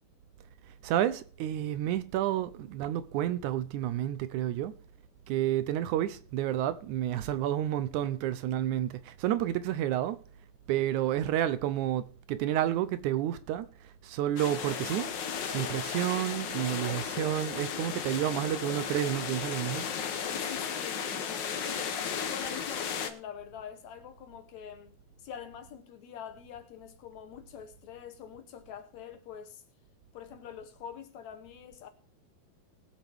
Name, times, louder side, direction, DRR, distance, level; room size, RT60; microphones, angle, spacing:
voice 1, 0.8-4.7 5.3-10.2 10.7-15.1 15.5-19.9, right 12 dB, 75° right, 2.0 m, -30 dB
sound 1, 14.4-23.1, left 7 dB, 85° left, 1.0 m, -35 dB
voice 2, 20.1-24.9 25.2-29.6 30.1-31.9, left 8 dB, 70° left, 2.1 m, -45 dB
20.5 x 7.6 x 3.5 m
omnidirectional pair, 3.7 m